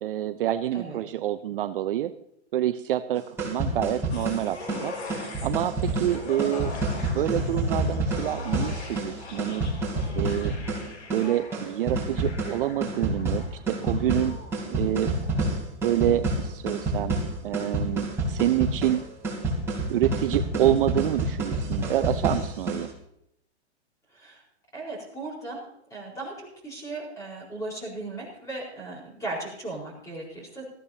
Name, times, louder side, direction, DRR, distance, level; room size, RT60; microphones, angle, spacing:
voice 1, 0.0-2.1 2.5-4.9 5.4-6.7 7.1-9.6 10.2-10.5 11.1-14.4 14.7-15.1 15.8-19.0 19.9-22.9, right 12 dB, 55° right, 10 dB, 0.6 m, -27 dB
sound 1, 3.2-22.9, right 2 dB, 5° right, 3.3 m, -29 dB
sound 2, 4.1-15.6 16.0-16.1, left 3 dB, 70° left, 3.6 m, -42 dB
voice 2, 24.7-25.6 25.9-30.6, right 2 dB, 10° left, -3 dB, 4.5 m, -37 dB
18.5 x 14.0 x 2.8 m, 0.76 s
hypercardioid pair, 160°, 34 cm